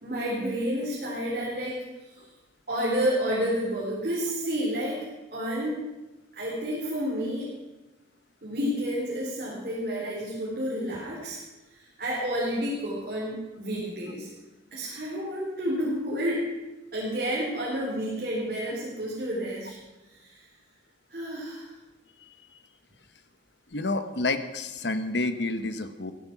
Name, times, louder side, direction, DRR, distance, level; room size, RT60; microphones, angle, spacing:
voice 1, 0.0-1.8 2.7-5.0 5.3-5.8 6.4-7.5 8.4-11.4 11.7-14.3 14.7-16.5 16.9-19.8 20.1-20.4 21.1-21.7, equal, 50° right, -6 dB, 4.2 m, -30 dB
voice 2, 23.7-26.1, left 2 dB, 70° left, 10 dB, 1.2 m, -29 dB
16.0 x 13.5 x 6.0 m, 1.1 s
head